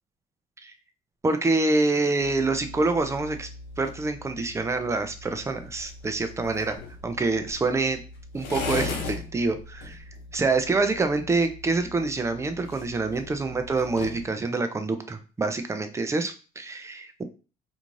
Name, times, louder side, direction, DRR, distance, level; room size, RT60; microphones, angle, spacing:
voice 1, 1.2-3.5 3.8-6.8 7.0-8.0 8.3-10.0 10.3-17.2, right 3 dB, 15° right, 7 dB, 0.4 m, -26 dB
sound 1, 2.2-14.3, left 3 dB, 90° left, 0.8 m, -39 dB
2.6 x 2.3 x 3.1 m, 0.35 s
cardioid pair, 110°, 17 cm